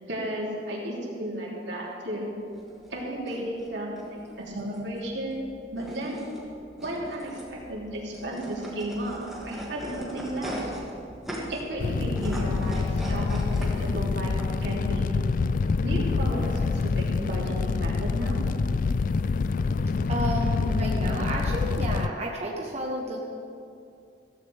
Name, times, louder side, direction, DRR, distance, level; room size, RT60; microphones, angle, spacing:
voice 1, 0.1-2.4 2.9-5.4 5.7-6.2 6.8-10.6 11.5-14.3 14.6-15.1 15.8-18.4, right 1 dB, 85° right, -4 dB, 3.2 m, -33 dB
sound 1, 2.5-14.4, equal, ahead, 2.5 m, -40 dB
Fire, 11.8-22.1, left 4 dB, 50° left, 0.3 m, -26 dB
voice 2, 20.1-23.2, right 1 dB, 40° right, -2 dB, 1.2 m, -31 dB
15.0 x 15.0 x 3.5 m, 2.5 s
head